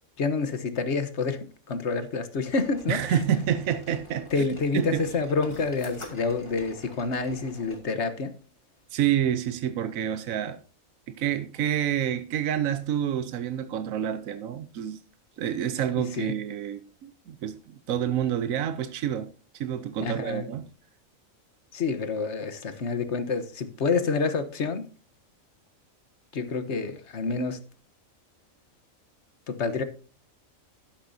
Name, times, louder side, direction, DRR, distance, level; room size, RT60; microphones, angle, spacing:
voice 1, 0.2-3.0 4.3-8.3 16.2-16.3 20.0-20.5 21.7-24.8 26.3-27.6 29.5-29.8, left 4 dB, 60° left, 1.3 m, -28 dB
sound 1, 2.5-7.8, equal, 20° left, 2.4 m, -47 dB
voice 2, 2.9-4.5 4.7-5.1 8.9-10.6 11.1-15.0 15.4-20.7, right 10 dB, 85° right, 1.2 m, -28 dB
12.0 x 11.5 x 2.7 m
omnidirectional pair, 1.4 m